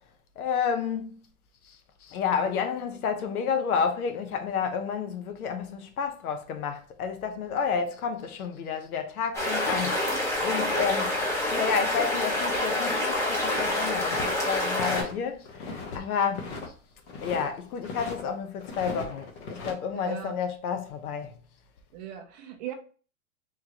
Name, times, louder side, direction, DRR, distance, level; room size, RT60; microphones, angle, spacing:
voice 1, 0.4-1.1 1.6-9.9 10.2-11.1 11.3-16.5 17.2-21.3, left 6 dB, 80° left, 0.9 m, -30 dB
sound 1, 9.3-15.0, left 1 dB, 5° left, 0.7 m, -27 dB
sound 2, 14.1-15.1 15.5-16.0 16.3-17.5 17.8-18.2 18.6-19.7, left 3 dB, 50° left, 1.0 m, -38 dB
voice 2, 19.9-20.4 21.9-22.7, right 9 dB, 30° right, 0.4 m, -37 dB
3.6 x 3.1 x 2.8 m
hypercardioid pair, 140°, 43 cm